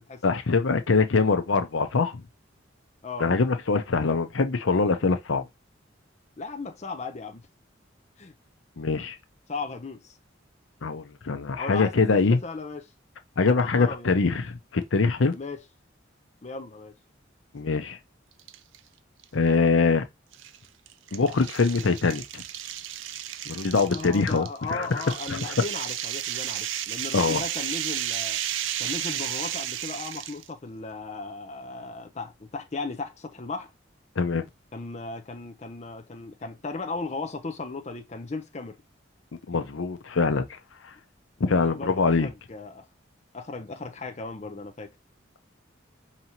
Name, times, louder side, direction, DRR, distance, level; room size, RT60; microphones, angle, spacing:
voice 1, 0.2-2.2 3.2-5.4 8.8-9.2 10.8-12.4 13.4-15.4 17.5-18.0 19.3-20.0 21.1-22.4 23.5-24.9 25.3-25.4 27.1-27.4 34.2-34.5 39.5-40.4 41.4-42.3, left 4 dB, 85° left, 0.7 m, -23 dB
voice 2, 6.4-7.4 8.2-8.3 9.5-10.1 11.6-12.9 13.5-14.1 15.3-15.6 16.4-16.9 23.9-28.4 28.8-33.7 34.7-38.8 41.5-42.9 43.3-44.9, left 3 dB, 35° left, 0.6 m, -36 dB
sound 1, 18.4-18.8 19.2-19.3 20.3-30.5, right 11 dB, 80° right, 0.4 m, -33 dB
4.9 x 2.9 x 2.7 m
head